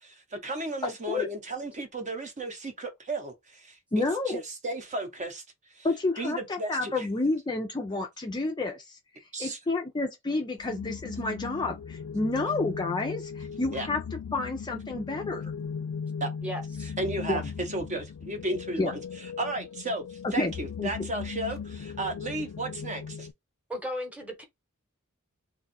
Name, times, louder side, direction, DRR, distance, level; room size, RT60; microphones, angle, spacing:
voice 1, 0.0-5.4 5.7-5.9 6.2-7.1 9.3-9.6 13.7-13.9 16.2-16.3 17.0-18.9 19.4-23.3, right 2 dB, 35° right, 0.8 m, -34 dB
voice 2, 0.8-1.3 3.9-4.4 5.8-9.0 9.4-14.0 14.3-15.4 17.3-17.4 18.8-18.9 20.2-20.5 20.8-20.9, left 3 dB, 20° left, 0.4 m, -30 dB
sound 1, 10.6-23.3, left 6 dB, 90° left, 0.4 m, -38 dB
voice 3, 16.4-16.9 23.7-24.4, equal, 5° right, 1.0 m, -35 dB
2.6 x 2.4 x 4.1 m
head